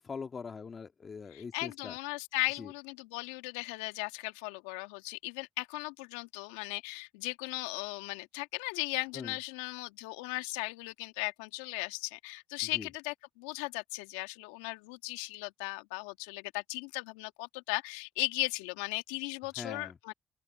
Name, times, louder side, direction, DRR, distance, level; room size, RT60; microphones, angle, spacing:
voice 1, 0.0-1.9 2.6-2.7 9.1-9.3 12.7-12.9 19.6-20.0, left 5 dB, 45° left, 2.0 m, -42 dB
voice 2, 1.3-20.1, left 24 dB, 85° left, 2.0 m, -37 dB
open air
hypercardioid pair, 50°, 0 cm